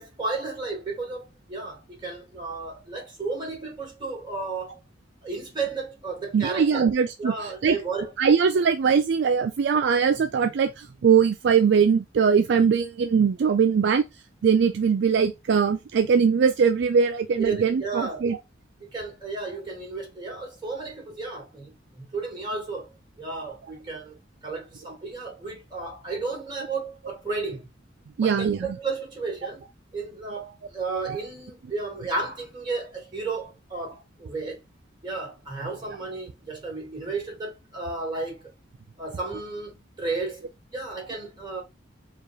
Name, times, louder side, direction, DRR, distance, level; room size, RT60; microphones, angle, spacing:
voice 1, 0.0-4.8 5.2-6.9 7.2-8.1 17.4-18.2 18.8-24.2 24.4-27.7 28.2-29.7 29.9-34.6 35.0-38.4 39.0-41.6, right 3 dB, 25° right, 2.5 m, -33 dB
voice 2, 6.3-7.8 8.2-14.0 14.4-18.4 28.2-28.7, right 6 dB, 65° right, 0.4 m, -21 dB
4.9 x 2.4 x 3.1 m
head